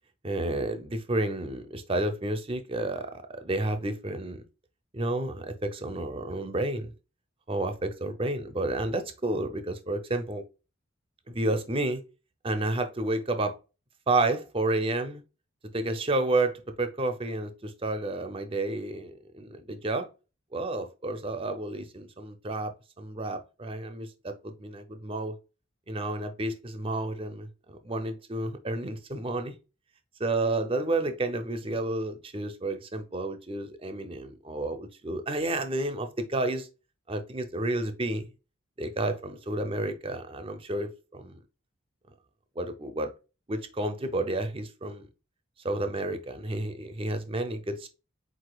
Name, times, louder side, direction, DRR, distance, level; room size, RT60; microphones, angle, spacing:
voice 1, 0.2-4.4 4.9-6.9 7.5-10.4 11.3-12.0 12.4-13.6 14.1-15.2 15.7-20.1 20.5-25.4 25.9-29.5 30.2-36.7 37.1-38.3 38.8-41.4 42.6-43.1 43.5-45.1 45.6-47.9, right 2 dB, 25° right, 0.5 m, -31 dB
4.9 x 3.9 x 2.3 m
head